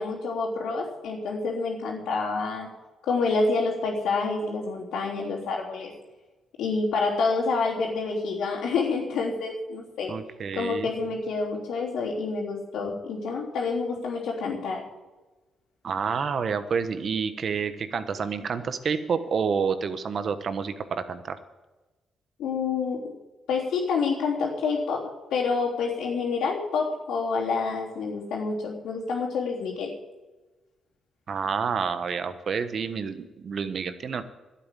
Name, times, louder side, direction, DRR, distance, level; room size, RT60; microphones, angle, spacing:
voice 1, 0.0-2.7 3.0-5.9 6.6-10.1 10.5-14.8 22.4-23.0 23.5-29.9, left 4 dB, 90° left, -8 dB, 3.5 m, -28 dB
voice 2, 10.1-10.9 15.8-21.4 31.3-34.2, right 6 dB, 55° right, 11 dB, 1.2 m, -29 dB
12.0 x 8.7 x 9.2 m, 1.1 s
cardioid pair, 85°, 0 cm